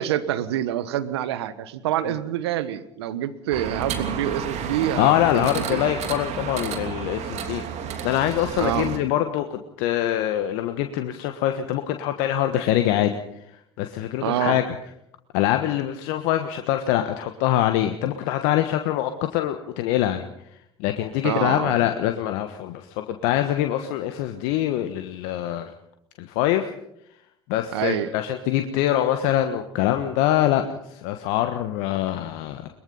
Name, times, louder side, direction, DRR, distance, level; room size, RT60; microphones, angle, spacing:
voice 1, 0.0-5.9 8.6-8.9 14.2-14.6 21.2-21.8 27.7-28.1, right 11 dB, 80° right, 14 dB, 1.3 m, -26 dB
sound 1, 3.5-9.0, right 7 dB, 55° right, 3.0 m, -31 dB
voice 2, 5.0-7.6 8.0-13.1 13.8-14.8 15.3-20.2 20.8-25.7 26.2-26.7 27.5-30.6 30.9-32.6, left 12 dB, 70° left, 7 dB, 1.3 m, -24 dB
22.5 x 22.0 x 5.5 m, 0.76 s
hypercardioid pair, 65°, 14 cm